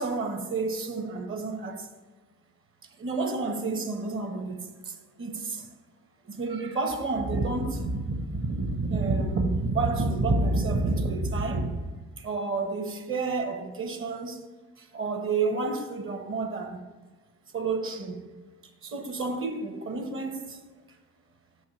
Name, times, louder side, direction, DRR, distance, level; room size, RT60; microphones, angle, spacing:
voice 1, 0.0-1.9 3.0-5.7 6.2-11.8 12.2-14.4 14.8-16.8 17.5-18.2 18.8-20.6, right 3 dB, 45° right, 1.0 m, -29 dB
6.2 x 4.7 x 5.7 m
cardioid pair, 90°, 30 cm